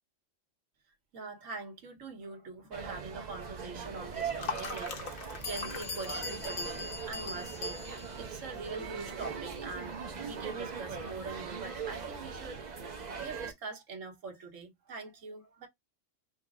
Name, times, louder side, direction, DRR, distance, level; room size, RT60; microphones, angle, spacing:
voice 1, 1.1-15.7, right 4 dB, 75° right, 1.5 m, -44 dB
sound 1, 2.7-13.5, right 6 dB, 45° right, 0.6 m, -40 dB
sound 2, 3.7-10.8, left 5 dB, 80° left, 1.3 m, -45 dB
Bell, 4.3-4.4 5.1-5.2 5.4-8.3, left 4 dB, 55° left, 0.7 m, -41 dB
5.1 x 2.0 x 3.5 m
omnidirectional pair, 1.4 m